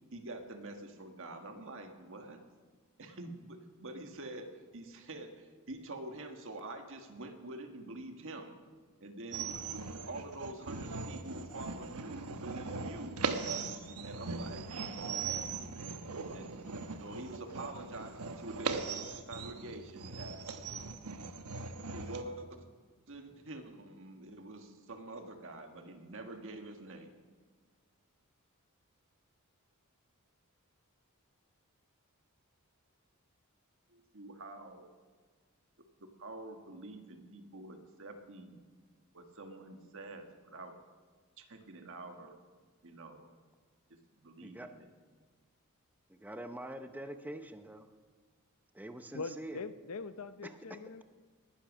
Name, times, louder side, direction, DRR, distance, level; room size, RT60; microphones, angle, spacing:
voice 1, 0.1-2.4 3.0-8.6 9.0-9.6 10.1-13.3 14.0-14.6 14.9-15.6 16.3-16.6 17.0-18.9 19.3-20.4 21.9-22.7 23.1-27.1 33.9-34.9 36.0-38.6 39.1-40.8 41.4-42.4 42.8-43.3 43.9-44.9, right 2 dB, 60° right, 5 dB, 1.7 m, -46 dB
sound 1, 9.3-22.2, right 4 dB, 85° right, 1.0 m, -39 dB
voice 2, 46.1-47.9 48.7-49.6 50.4-50.8, right 1 dB, 10° right, 8 dB, 0.7 m, -45 dB
voice 3, 49.1-51.0, left 4 dB, 80° left, 13 dB, 0.7 m, -42 dB
19.5 x 10.5 x 6.2 m, 1.5 s
head